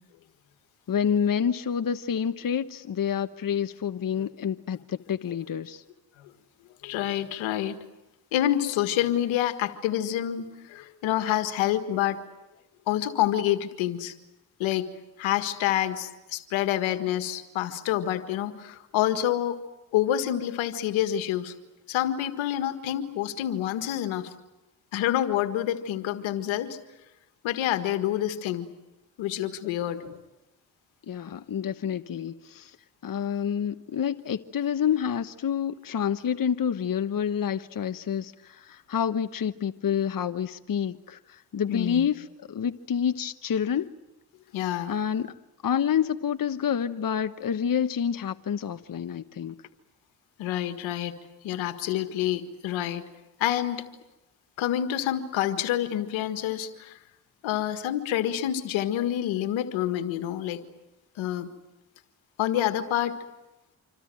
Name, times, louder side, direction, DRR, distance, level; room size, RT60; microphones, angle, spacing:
voice 1, 0.9-5.8 31.0-32.8 33.0-43.9 44.9-45.3 45.6-49.6, left 8 dB, 45° left, 10 dB, 1.1 m, -28 dB
voice 2, 6.8-7.8 8.3-12.2 12.9-14.1 14.6-14.9 15.2-19.6 19.9-21.5 21.9-24.3 24.9-26.8 27.4-28.7 29.2-30.2 41.7-42.1 44.5-44.9 50.4-51.1 51.4-53.0 53.4-53.8 54.6-57.0 57.4-60.6 61.2-61.5 62.4-63.2, left 12 dB, 85° left, 8 dB, 1.8 m, -27 dB
27.0 x 25.0 x 7.7 m, 0.99 s
supercardioid pair, 45°, 45 cm